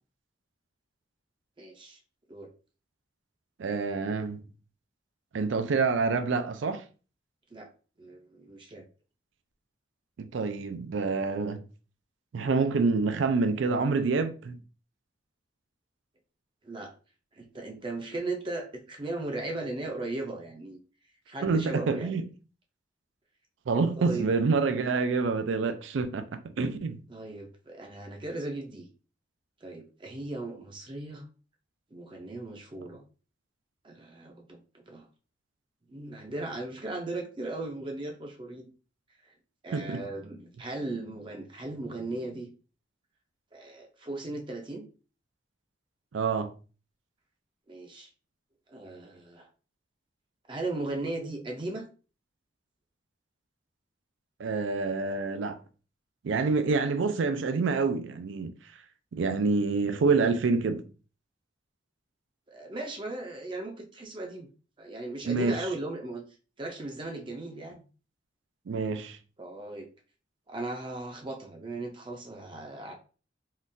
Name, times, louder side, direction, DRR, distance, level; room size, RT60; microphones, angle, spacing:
voice 1, 1.6-2.0 2.3-2.5 7.5-7.7 8.0-8.8 16.6-16.9 17.3-20.8 21.3-22.2 24.0-24.3 27.1-28.8 29.6-31.3 31.9-33.0 33.8-35.1 35.9-38.7 39.2-39.3 39.6-42.5 43.5-44.8 47.7-48.1 48.7-49.5 50.5-51.9 62.5-64.5 64.8-66.2 66.6-67.8 69.4-69.9 70.5-72.9, right 2 dB, 25° right, 0.5 m, -37 dB
voice 2, 3.6-4.4 5.3-6.8 10.2-11.6 12.3-14.6 21.4-22.2 23.7-27.0 39.7-40.0 46.1-46.5 54.4-55.6 56.2-58.5 59.1-60.9 65.3-65.6 68.7-69.2, right 4 dB, 80° right, 0.4 m, -27 dB
3.7 x 2.3 x 2.6 m
head